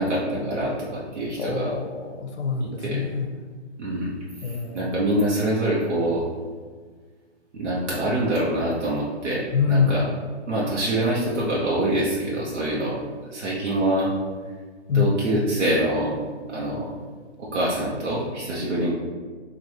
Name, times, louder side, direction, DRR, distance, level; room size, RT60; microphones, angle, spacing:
voice 1, 0.0-1.7 2.6-3.0 3.8-4.1 4.4-6.2 7.5-10.0 10.5-13.0 13.3-14.1 14.9-16.1 16.5-16.9 17.4-18.9, right 1 dB, 85° right, -6 dB, 1.1 m, -25 dB
voice 2, 1.4-3.4 4.4-4.9 9.5-10.1 14.9-15.2, left 5 dB, 70° left, 4 dB, 0.8 m, -25 dB
5.1 x 2.6 x 3.0 m, 1.5 s
hypercardioid pair, 180°, 35 cm